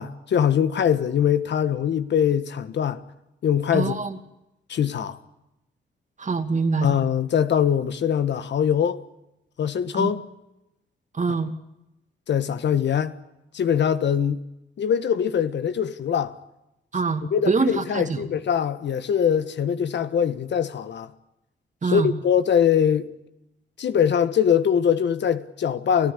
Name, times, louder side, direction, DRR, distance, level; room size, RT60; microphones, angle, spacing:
voice 1, 0.0-3.0 3.4-3.9 4.7-5.2 6.8-9.0 9.6-10.2 11.3-11.4 12.3-13.1 13.5-14.4 14.8-16.3 17.3-21.1 21.8-23.1 23.8-26.1, left 8 dB, 70° left, 1.5 m, -22 dB
voice 2, 3.7-4.2 6.2-7.0 9.9-10.1 11.1-11.5 16.9-18.2 21.8-22.1, right 4 dB, 40° right, 2.6 m, -24 dB
29.0 x 14.5 x 9.9 m
cardioid pair, 75°, 19 cm